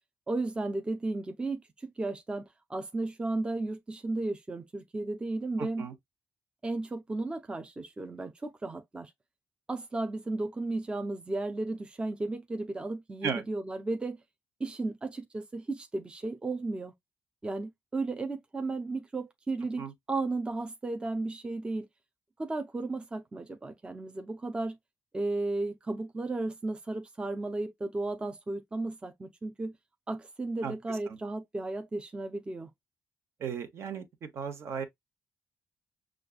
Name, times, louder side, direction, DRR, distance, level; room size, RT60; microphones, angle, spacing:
voice 1, 0.3-5.9 6.6-9.1 9.7-14.2 14.6-16.9 17.4-21.9 22.4-24.8 25.1-29.8 30.1-32.7, right 2 dB, 20° right, 0.6 m, -34 dB
voice 2, 5.6-5.9 13.2-13.4 19.8-19.9 30.6-31.2 33.4-34.8, right 6 dB, 60° right, 1.2 m, -36 dB
6.3 x 2.4 x 2.5 m
cardioid pair, 115°, 5 cm